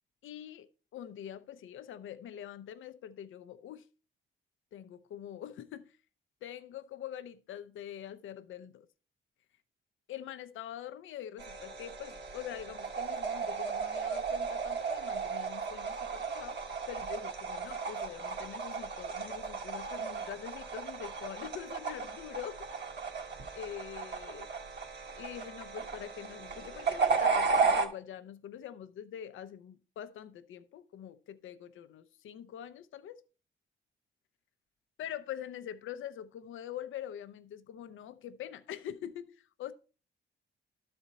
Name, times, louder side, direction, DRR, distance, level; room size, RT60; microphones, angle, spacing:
voice 1, 0.2-3.9 4.7-5.9 6.4-8.9 10.1-16.6 16.9-22.6 23.5-24.5 25.2-33.2 35.0-39.7, left 10 dB, 80° left, 0.6 m, -44 dB
sound 1, 11.4-27.9, right 5 dB, 60° right, 1.6 m, -34 dB
12.5 x 4.3 x 4.0 m
cardioid pair, 85°, 20 cm